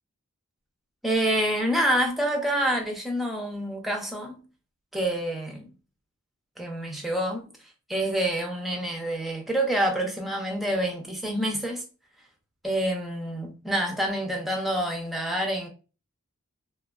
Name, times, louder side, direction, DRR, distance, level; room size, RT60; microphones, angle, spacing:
voice 1, 1.0-4.4 4.9-5.7 6.6-7.5 7.9-11.8 12.6-15.7, right 1 dB, ahead, 0.4 m, -27 dB
2.7 x 2.2 x 2.2 m
head